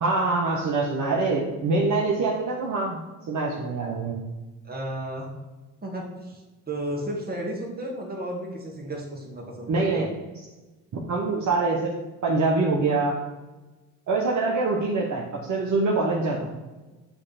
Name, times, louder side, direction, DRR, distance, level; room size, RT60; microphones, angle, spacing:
voice 1, 0.0-3.0 3.3-4.2 9.7-10.1 10.9-11.9 12.2-13.2 14.1-16.5, right 3 dB, 45° right, -3 dB, 1.1 m, -24 dB
voice 2, 4.6-5.3 5.8-10.1, right 1 dB, 20° right, -1 dB, 1.9 m, -33 dB
8.0 x 3.3 x 4.2 m, 1.1 s
hypercardioid pair, 65°, 41 cm